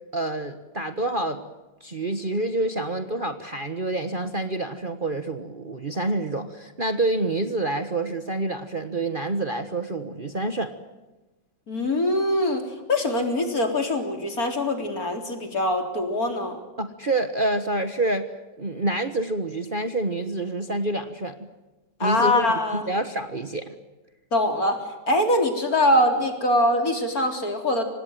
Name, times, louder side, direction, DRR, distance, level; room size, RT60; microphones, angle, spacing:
voice 1, 0.1-1.4 1.8-10.7 16.8-18.3 18.6-21.3 22.0-22.4 22.7-23.7, right 2 dB, 30° right, 8 dB, 1.4 m, -27 dB
voice 2, 11.7-16.6 22.0-22.9 24.3-24.8 25.1-27.9, left 1 dB, 50° left, 5 dB, 4.2 m, -23 dB
25.5 x 19.5 x 9.2 m, 1.1 s
omnidirectional pair, 2.0 m